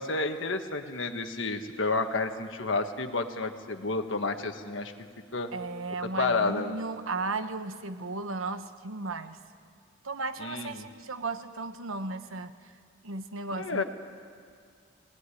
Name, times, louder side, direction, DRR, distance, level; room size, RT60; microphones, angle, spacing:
voice 1, 0.0-4.9 5.3-5.5 6.0-6.7 10.4-10.9 13.6-13.8, left 3 dB, 70° left, 6 dB, 1.5 m, -30 dB
voice 2, 5.5-9.4 10.0-12.5 13.0-13.8, right 3 dB, 90° right, 9 dB, 1.1 m, -35 dB
23.0 x 18.5 x 9.9 m, 2.2 s
head